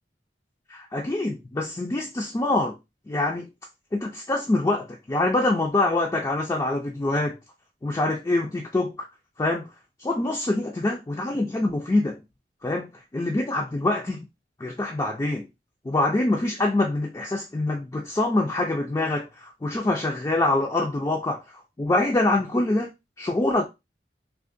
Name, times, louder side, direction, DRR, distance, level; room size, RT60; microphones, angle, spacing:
voice 1, 0.7-2.8 3.1-3.5 3.9-7.3 7.8-9.1 9.4-9.6 10.0-12.2 12.6-14.2 14.6-15.4 15.9-21.4 21.8-22.9 23.2-23.6, left 2 dB, 20° left, 0.3 m, -25 dB
3.5 x 2.4 x 2.5 m
head